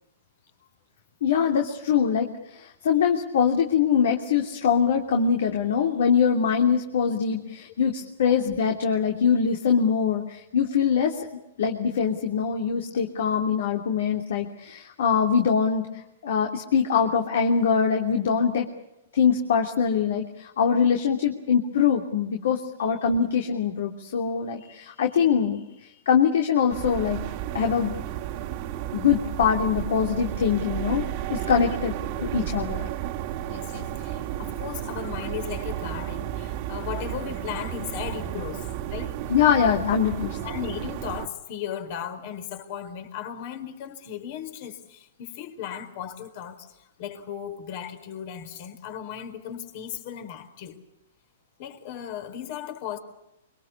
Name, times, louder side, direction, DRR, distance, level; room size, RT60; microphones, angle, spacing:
voice 1, 1.2-11.1 11.6-18.7 19.1-27.2 27.5-27.9 28.9-31.0 31.3-32.0 32.2-32.9 39.3-40.3, left 7 dB, 70° left, 3 dB, 3.1 m, -23 dB
sound 1, 26.7-41.3, right 12 dB, 45° right, 1.8 m, -33 dB
voice 2, 32.1-32.5 33.5-39.1 39.6-39.7 40.2-50.8 51.6-53.0, left 9 dB, 50° left, 8 dB, 4.3 m, -36 dB
24.5 x 24.0 x 8.5 m, 0.86 s
hypercardioid pair, 130°, 0 cm